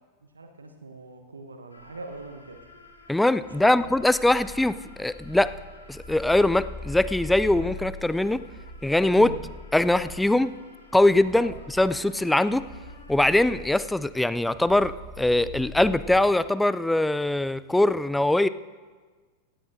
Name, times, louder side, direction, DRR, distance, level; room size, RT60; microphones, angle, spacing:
voice 1, 0.2-2.6 3.5-3.7 9.2-9.4 11.4-11.5, right 3 dB, 75° right, 6 dB, 0.9 m, -41 dB
sound 1, 1.7-13.9, left 3 dB, 80° left, 1.7 m, -53 dB
sound 2, 2.2-16.2, left 2 dB, 40° right, 2.4 m, -42 dB
voice 2, 3.1-5.5 5.9-8.4 8.8-9.3 9.7-10.5 10.9-12.6 13.1-18.5, left 1 dB, 5° left, 15 dB, 0.3 m, -22 dB
17.0 x 16.0 x 2.6 m, 1.4 s
figure-of-eight pair, 90°, 0 cm